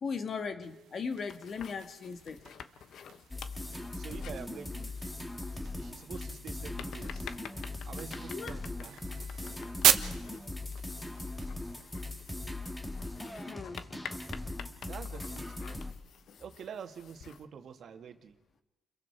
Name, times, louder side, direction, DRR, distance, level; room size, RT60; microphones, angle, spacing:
voice 1, 0.0-2.4 8.3-8.6 13.5-13.9, left 5 dB, 50° left, 7 dB, 1.8 m, -38 dB
sound 1, 0.6-12.4, right 10 dB, 80° right, 1.1 m, -37 dB
sound 2, 1.1-17.4, left 7 dB, 65° left, 1.1 m, -50 dB
sound 3, 3.3-15.9, left 2 dB, 10° left, 2.0 m, -40 dB
voice 2, 4.0-4.9 5.7-7.3 7.8-9.0 14.9-15.8 16.4-18.4, right 7 dB, 60° right, 6 dB, 1.9 m, -46 dB
29.5 x 22.0 x 4.7 m, 0.99 s
cardioid pair, 90°, 0 cm